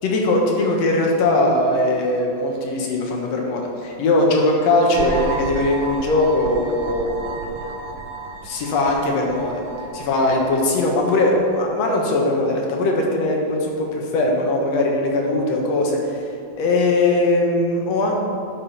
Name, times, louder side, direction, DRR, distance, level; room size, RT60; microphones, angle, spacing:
voice 1, 0.0-7.1 8.4-9.6 9.9-16.2 16.6-18.1, left 2 dB, 65° left, 0 dB, 2.2 m, -20 dB
sound 1, 4.9-11.6, right 4 dB, 85° right, 2.1 m, -33 dB
11.0 x 5.7 x 4.2 m, 2.6 s
omnidirectional pair, 3.4 m